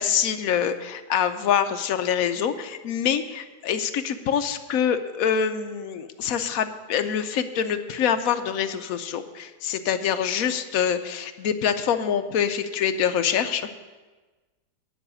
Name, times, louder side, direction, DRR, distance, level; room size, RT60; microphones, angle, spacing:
voice 1, 0.0-13.7, left 8 dB, 65° left, 9 dB, 1.0 m, -25 dB
10.5 x 5.6 x 8.7 m, 1.3 s
omnidirectional pair, 1.8 m